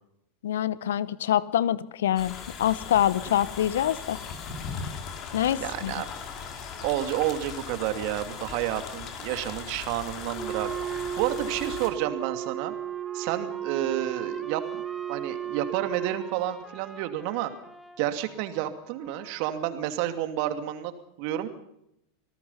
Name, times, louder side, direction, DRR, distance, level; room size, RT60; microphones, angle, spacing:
voice 1, 0.4-4.2 5.3-5.9, left 11 dB, 70° left, 19 dB, 1.0 m, -25 dB
sound 1, 2.2-11.9, left 6 dB, 45° left, 4.7 m, -39 dB
voice 2, 5.6-6.1 6.8-12.7 13.1-14.8 15.1-17.5 18.0-20.9 21.2-21.5, right 12 dB, 55° right, 8 dB, 2.6 m, -30 dB
Wind instrument woodwind instrument, 10.3-16.4, right 10 dB, 25° right, 1.2 m, -34 dB
Trumpet, 11.7-19.9, right 1 dB, ahead, 2.7 m, -49 dB
27.0 x 19.0 x 5.7 m, 0.80 s
hypercardioid pair, 90°, 0 cm